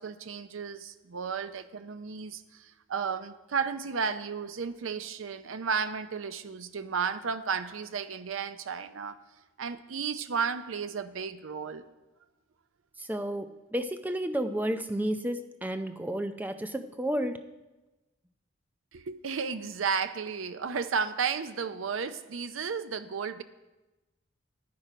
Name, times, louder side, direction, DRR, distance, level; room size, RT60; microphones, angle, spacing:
voice 1, 0.0-9.2 9.6-11.9 18.9-23.4, right 6 dB, 85° right, 12 dB, 0.6 m, -33 dB
voice 2, 13.0-17.4, right 1 dB, 10° right, 8 dB, 0.5 m, -32 dB
10.5 x 9.6 x 5.0 m, 1.1 s
head